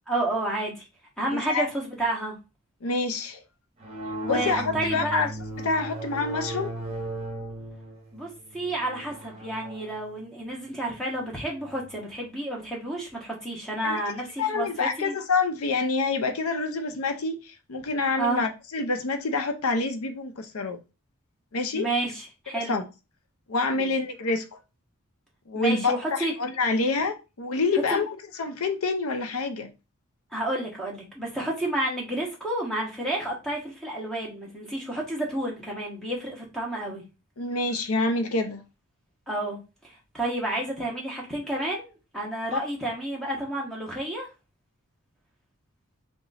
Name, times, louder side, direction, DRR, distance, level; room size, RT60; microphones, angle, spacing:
voice 1, 0.1-0.9 1.2-2.4 4.2-5.3 8.1-15.1 18.2-18.4 21.7-22.8 23.7-23.9 25.5-26.3 27.7-28.0 30.3-37.0 39.3-44.3, right 1 dB, 5° left, 1.3 m, -30 dB
voice 2, 1.3-1.6 2.8-3.4 4.3-5.3 5.6-6.7 13.8-14.0 14.4-20.8 21.5-21.9 22.7-22.8 23.5-24.5 25.5-29.7 37.4-38.6 42.5-42.6, left 3 dB, 85° left, 0.7 m, -27 dB
sound 1, 3.8-11.9, right 1 dB, 30° right, 1.2 m, -37 dB
3.6 x 3.0 x 4.1 m
head